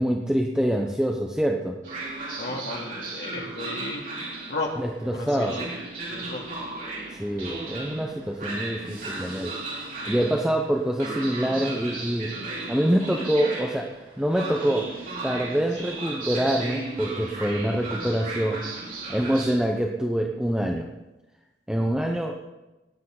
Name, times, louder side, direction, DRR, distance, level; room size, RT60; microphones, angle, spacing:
voice 1, 0.0-1.8 4.8-5.6 7.1-9.6 10.0-12.3 12.7-13.9 14.2-14.9 15.2-18.6 19.1-20.9 21.7-22.4, right 1 dB, 5° right, 1 dB, 0.8 m, -25 dB
Train, 1.8-19.5, right 2 dB, 50° right, 4.6 m, -35 dB
voice 2, 2.4-4.0 4.5-4.7 5.1-5.7 6.1-6.6, left 2 dB, 75° left, -1 dB, 2.6 m, -34 dB
18.5 x 10.0 x 3.9 m, 1.0 s
head